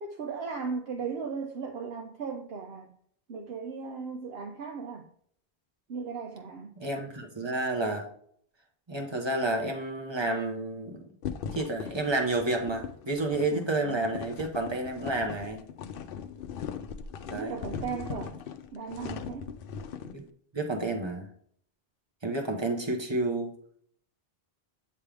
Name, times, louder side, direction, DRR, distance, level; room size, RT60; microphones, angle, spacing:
voice 1, 0.0-2.9 3.3-5.1 5.9-6.7 13.5-14.0 17.3-18.4 18.7-19.5, right 5 dB, 75° right, 0.9 m, -37 dB
voice 2, 6.8-8.1 8.9-11.1 11.5-15.6 17.3-17.9 20.0-20.3 20.5-21.3 22.2-23.5, right 2 dB, 25° right, 1.1 m, -30 dB
sound 1, 11.2-20.2, left 7 dB, 65° left, 0.7 m, -39 dB
8.8 x 3.3 x 3.4 m
omnidirectional pair, 1.0 m